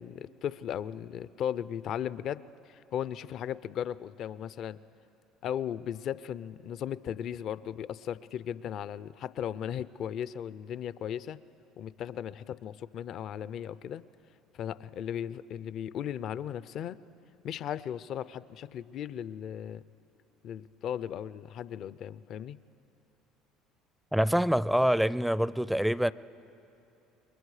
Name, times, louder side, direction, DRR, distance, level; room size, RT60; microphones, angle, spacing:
voice 1, 0.0-4.8 5.4-11.4 11.8-14.0 14.5-17.0 17.4-19.8 20.4-22.6, left 9 dB, 55° left, 0.5 m, -36 dB
voice 2, 24.1-26.1, equal, ahead, 0.4 m, -25 dB
28.5 x 22.5 x 4.9 m
supercardioid pair, 85°, 0 cm